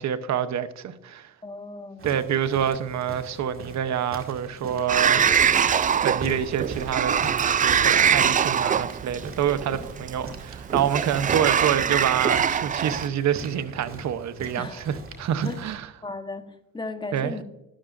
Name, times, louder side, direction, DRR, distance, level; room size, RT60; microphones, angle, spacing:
voice 1, 0.0-1.3 2.0-5.7 6.0-15.9 17.1-17.4, right 9 dB, 65° right, 0.8 m, -27 dB
voice 2, 1.4-2.1 14.6-14.8 15.4-15.6 16.0-17.4, left 3 dB, 15° left, 1.2 m, -36 dB
sound 1, 2.0-15.8, right 3 dB, 45° right, 2.1 m, -41 dB
Sliding door, 4.9-13.1, right 7 dB, 25° right, 0.3 m, -23 dB
12.5 x 12.0 x 2.5 m
cardioid pair, 90°, 30 cm